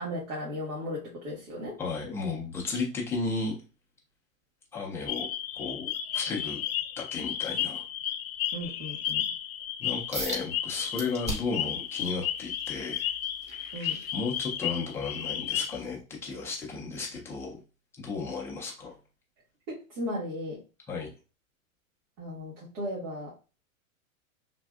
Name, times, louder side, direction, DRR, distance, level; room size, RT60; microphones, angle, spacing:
voice 1, 0.0-1.8 8.5-9.3 13.7-14.0 19.7-20.6 22.2-23.3, left 1 dB, 80° right, -5 dB, 1.6 m, -36 dB
voice 2, 1.8-3.6 4.7-5.3 5.5-6.6 7.0-7.8 9.8-13.1 14.1-17.6 18.0-19.0 20.9-21.1, left 4 dB, 5° left, -3 dB, 0.3 m, -34 dB
sound 1, 5.1-15.8, left 10 dB, 85° left, 0.7 m, -33 dB
sound 2, 10.1-10.5 11.0-11.6 12.1-14.7 15.2-15.4 16.0-16.1, equal, 15° right, 0.8 m, -37 dB
3.3 x 2.6 x 2.3 m, 0.33 s
hypercardioid pair, 125°, 41 cm